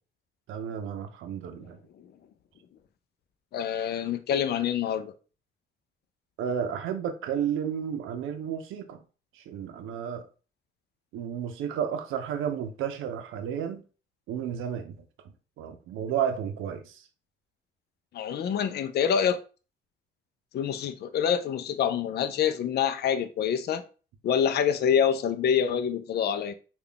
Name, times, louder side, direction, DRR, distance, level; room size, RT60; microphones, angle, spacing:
voice 1, 0.5-1.8 6.4-9.0 9.5-10.3 11.1-13.8 14.3-15.0 15.6-17.0, right 8 dB, 85° right, 0.6 m, -32 dB
voice 2, 3.5-5.1 18.1-19.4 20.5-23.8 24.2-26.5, left 8 dB, 55° left, 0.4 m, -26 dB
3.4 x 2.3 x 3.7 m
cardioid pair, 90°, 20 cm